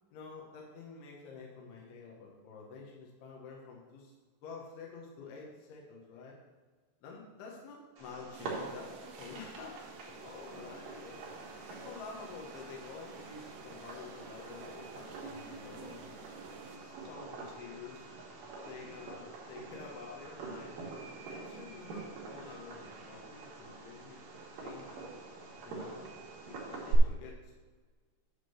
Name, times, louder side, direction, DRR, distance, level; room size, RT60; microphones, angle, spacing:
voice 1, 0.1-4.1 4.4-6.4 7.0-11.2 11.7-16.2 16.6-18.1 18.7-20.8 21.3-24.3 24.6-25.2 25.6-26.0 26.5-27.6, left 5 dB, 75° left, -3 dB, 3.2 m, -49 dB
Fireworks, 8.0-27.0, right 4 dB, 65° right, 2.9 m, -45 dB
sound 1, 8.3-16.8, right 5 dB, 80° right, 2.9 m, -52 dB
9.8 x 3.7 x 6.9 m, 1.4 s
omnidirectional pair, 4.7 m